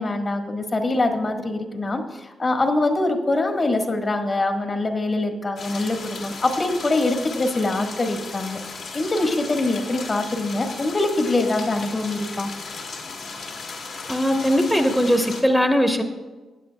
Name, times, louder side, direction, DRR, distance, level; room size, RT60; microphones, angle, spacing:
voice 1, 0.0-8.6 8.9-12.5, left 2 dB, 45° left, 4 dB, 1.6 m, -24 dB
sound 1, 5.6-15.4, left 4 dB, 70° left, 2.0 m, -36 dB
voice 2, 14.1-16.0, equal, ahead, 4 dB, 1.2 m, -19 dB
16.5 x 9.2 x 2.3 m, 1.2 s
supercardioid pair, 45°, 0 cm